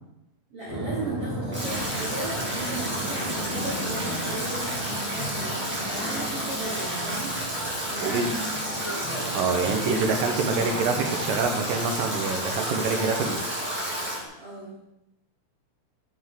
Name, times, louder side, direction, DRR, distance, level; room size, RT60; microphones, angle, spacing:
voice 1, 0.5-7.4 7.9-8.4 12.7-13.1 14.4-14.8, right 2 dB, 55° right, -6 dB, 1.8 m, -36 dB
sound 1, 0.7-14.3, right 1 dB, 25° right, 0.8 m, -37 dB
Stream / Drip / Trickle dribble, 1.5-14.2, equal, 5° right, 1.0 m, -31 dB
sound 2, 2.9-11.8, left 1 dB, 65° left, 1.8 m, -41 dB
voice 2, 8.0-8.3 9.3-13.4, right 4 dB, 80° right, 4 dB, 2.5 m, -26 dB
9.6 x 5.3 x 3.6 m, 0.86 s
omnidirectional pair, 4.1 m